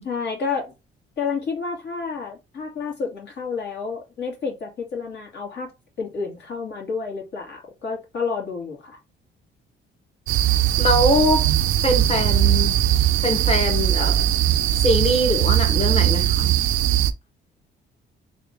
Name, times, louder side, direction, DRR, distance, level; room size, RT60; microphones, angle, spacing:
voice 1, 0.0-0.7 1.2-5.7 6.0-9.0, left 5 dB, 60° left, 2.0 m, -30 dB
sound 1, 10.3-17.1, right 12 dB, 85° right, 0.5 m, -20 dB
voice 2, 10.8-11.4 11.8-12.7 13.2-14.2 14.8-16.5, left 1 dB, 30° left, 1.4 m, -22 dB
3.5 x 2.6 x 3.6 m
cardioid pair, 90°, 20 cm